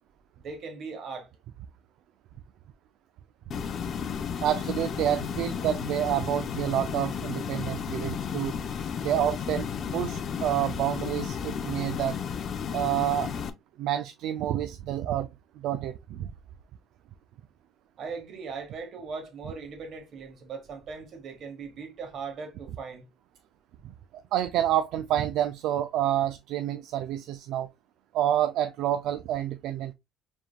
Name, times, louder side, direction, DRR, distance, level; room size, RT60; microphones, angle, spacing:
voice 1, 0.4-1.3 18.0-23.0, right 5 dB, 50° right, 1.5 m, -39 dB
sound 1, 3.5-13.5, left 7 dB, 40° left, 0.5 m, -33 dB
voice 2, 4.4-8.5 9.0-9.7 9.9-12.2 12.7-13.3 13.8-15.3 15.6-16.3 24.3-27.7 28.1-29.9, right 11 dB, 70° right, 0.3 m, -28 dB
4.8 x 3.6 x 2.2 m
cardioid pair, 130°, 0 cm